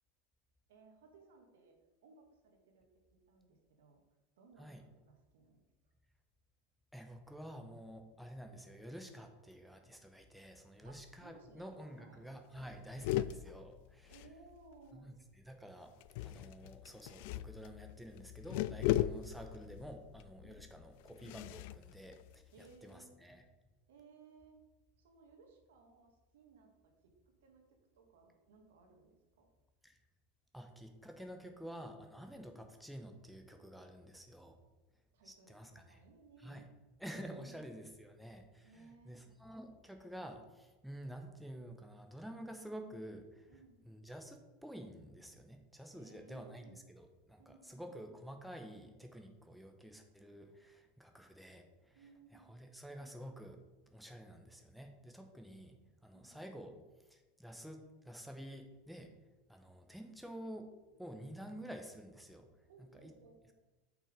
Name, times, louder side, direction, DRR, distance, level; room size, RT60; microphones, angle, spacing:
voice 1, 0.7-1.8 2.0-4.0 4.4-5.6 10.8-12.3 14.1-15.1 20.4-20.5 22.5-23.4 23.9-24.6 25.0-27.1 27.4-29.5 35.1-36.7 37.3-37.7 38.6-39.3 43.5-43.8 45.9-46.8 47.4-47.9 51.9-52.6 56.1-56.4 62.6-63.5, right 4 dB, 75° right, 3 dB, 1.8 m, -62 dB
voice 2, 6.9-14.1 14.9-15.1 15.5-15.9 16.2-23.4 29.8-30.0 30.5-34.6 35.2-36.0 36.4-36.6 37.0-43.5 43.9-52.0 52.3-53.6 53.9-55.7 56.0-56.8 57.1-59.1 59.5-60.7 61.0-62.5 63.0-63.1, equal, ahead, 4 dB, 1.2 m, -50 dB
sound 1, 10.9-11.3 11.6-11.7 12.0-12.2 12.6-14.9 16.0-22.9, left 14 dB, 65° left, 0.3 m, -39 dB
6.9 x 5.9 x 5.2 m, 1.1 s
hypercardioid pair, 90°, 0 cm